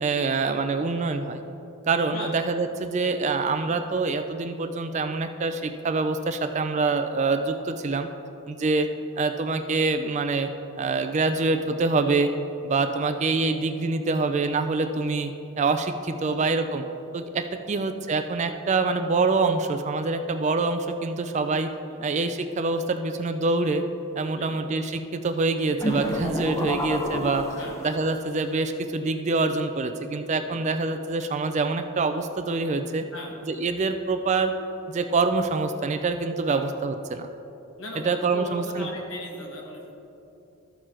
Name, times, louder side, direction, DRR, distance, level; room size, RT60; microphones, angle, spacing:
voice 1, 0.0-1.4 1.9-8.1 8.5-8.9 9.2-10.5 10.8-12.3 12.6-15.3 15.6-16.8 17.1-21.7 22.0-23.8 24.2-27.4 27.8-33.0 33.5-34.5 34.9-37.3 38.1-38.9, right 3 dB, 30° right, 8 dB, 0.3 m, -25 dB
sound 1, 25.8-28.2, equal, 15° left, 0.6 m, -30 dB
voice 2, 37.8-39.9, left 1 dB, 60° left, 0 dB, 1.4 m, -39 dB
13.5 x 4.7 x 4.4 m, 3.0 s
head